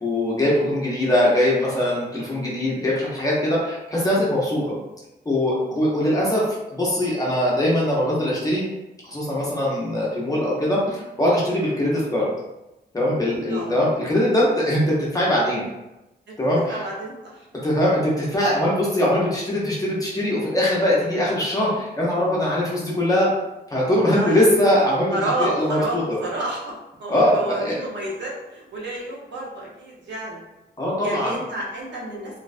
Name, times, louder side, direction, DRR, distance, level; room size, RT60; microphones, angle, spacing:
voice 1, 0.0-4.7 5.3-8.7 9.0-12.3 12.9-15.7 16.4-16.8 17.6-23.3 23.7-26.2 27.1-27.8 30.8-31.4, left 1 dB, 20° left, -6 dB, 0.5 m, -21 dB
voice 2, 16.7-17.5 24.2-24.5 25.1-26.7 27.0-30.4 31.0-32.4, right 1 dB, 85° right, -3 dB, 0.7 m, -30 dB
2.5 x 2.1 x 2.4 m, 0.97 s
wide cardioid pair, 180°, 18 cm